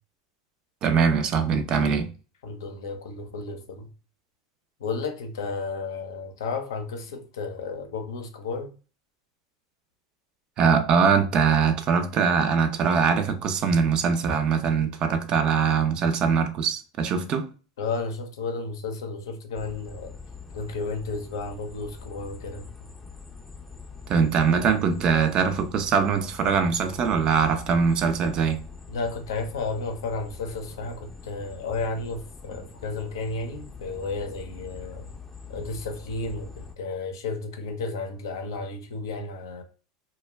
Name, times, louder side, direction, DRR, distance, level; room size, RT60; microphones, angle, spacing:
voice 1, 0.8-2.1 10.6-17.5 24.1-28.6, right 6 dB, 40° right, 0.5 m, -22 dB
voice 2, 2.4-3.9 4.8-8.7 17.8-20.2 20.5-22.9 28.9-35.1 35.5-39.6, left 3 dB, 75° left, 0.6 m, -33 dB
sound 1, 19.5-36.7, left 5 dB, 10° left, 0.5 m, -44 dB
2.2 x 2.1 x 3.2 m
hypercardioid pair, 90°, 2 cm